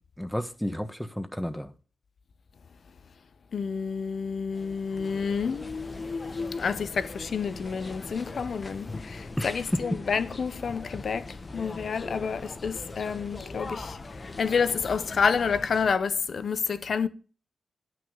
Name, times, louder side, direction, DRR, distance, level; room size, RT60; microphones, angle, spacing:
voice 1, 0.2-1.7 9.4-10.0, equal, 5° left, 1.2 m, -31 dB
voice 2, 3.5-11.2 11.5-13.9 14.4-17.1, left 5 dB, 65° left, 0.9 m, -29 dB
sound 1, 4.5-15.9, left 3 dB, 35° left, 1.3 m, -41 dB
11.5 x 6.5 x 6.3 m
wide cardioid pair, 105°, 0 cm